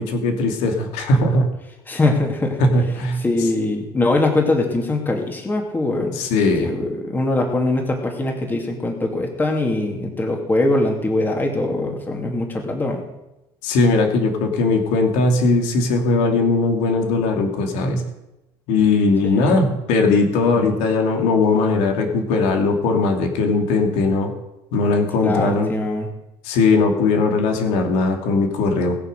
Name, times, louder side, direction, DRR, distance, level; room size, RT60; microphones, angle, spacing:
voice 1, 0.0-1.5 2.6-3.5 6.1-6.7 13.6-18.0 18.7-24.3 24.7-25.7 26.4-29.0, left 3 dB, 85° left, 4 dB, 2.7 m, -19 dB
voice 2, 1.9-2.6 3.2-6.2 6.6-13.0 19.2-19.7 20.6-20.8 25.2-26.1, left 2 dB, 15° left, 2 dB, 2.6 m, -22 dB
20.5 x 7.0 x 6.6 m, 0.92 s
cardioid pair, 140°, 11 cm